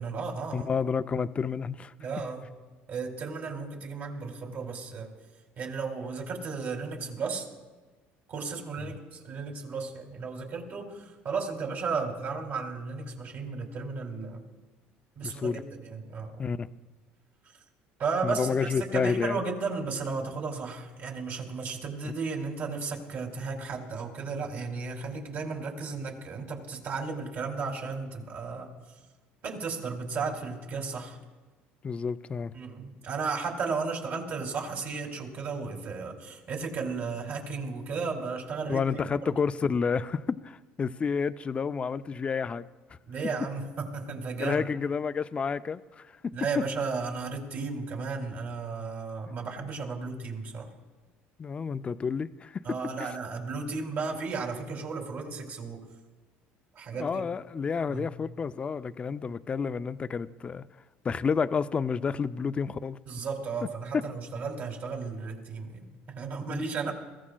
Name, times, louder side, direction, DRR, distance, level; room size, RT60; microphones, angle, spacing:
voice 1, 0.0-0.7 2.0-2.4 2.9-5.1 5.6-7.5 8.3-14.4 15.2-16.4 18.0-28.7 29.4-31.2 32.5-39.3 43.1-44.7 46.3-50.7 52.6-55.9 56.7-57.3 57.9-58.1 63.1-66.9, right 4 dB, 50° right, 2 dB, 2.6 m, -34 dB
voice 2, 0.5-1.9 8.9-9.0 15.2-15.6 16.4-16.7 18.2-19.4 31.8-32.6 38.7-42.7 44.4-46.2 51.4-52.6 53.0-53.1 56.9-60.7 61.0-63.0 66.5-66.7, left 5 dB, 25° left, 13 dB, 0.4 m, -30 dB
21.5 x 15.0 x 2.3 m, 1.3 s
cardioid pair, 110°, 4 cm